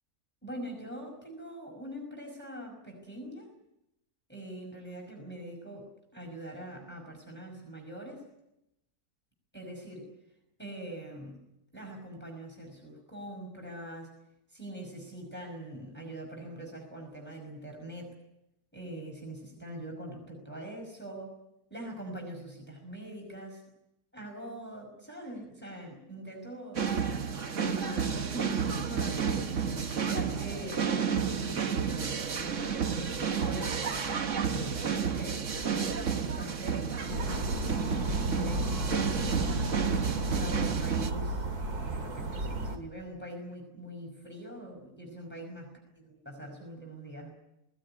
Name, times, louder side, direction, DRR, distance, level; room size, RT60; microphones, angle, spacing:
voice 1, 0.4-3.5 4.3-8.3 9.5-10.1 10.6-11.4 11.7-14.1 14.5-18.2 18.7-21.4 21.7-23.6 24.1-26.9 27.2-37.5 38.0-39.0 40.0-41.5 41.8-45.6 46.3-47.3, right 1 dB, 5° left, 1 dB, 5.4 m, -43 dB
sound 1, 26.8-41.1, right 6 dB, 55° right, 1.5 m, -31 dB
sound 2, 37.1-42.8, right 1 dB, 75° right, 2.6 m, -33 dB
20.5 x 18.5 x 9.9 m, 0.87 s
omnidirectional pair, 1.7 m